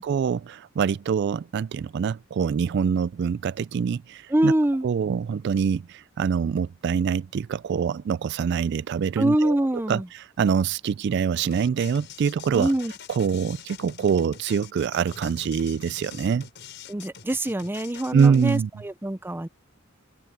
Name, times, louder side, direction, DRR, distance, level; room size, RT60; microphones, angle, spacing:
voice 1, 0.0-4.5 4.8-9.6 9.9-10.0 10.4-12.7 13.1-16.5 18.1-18.7, right 6 dB, 55° right, 0.3 m, -24 dB
voice 2, 4.3-4.9 9.2-10.1 12.5-12.9 16.9-19.5, right 1 dB, 10° right, 0.5 m, -24 dB
sound 1, 11.5-18.6, left 7 dB, 60° left, 7.5 m, -44 dB
head